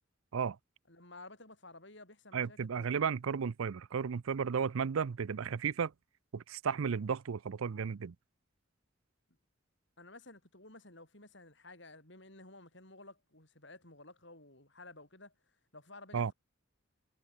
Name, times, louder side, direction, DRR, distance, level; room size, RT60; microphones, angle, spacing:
voice 1, 0.9-2.9 10.0-15.3 15.7-16.3, left 2 dB, 55° left, 6.9 m, -54 dB
voice 2, 2.3-5.9 6.3-8.1 16.1-16.3, right 6 dB, 80° right, 0.5 m, -34 dB
head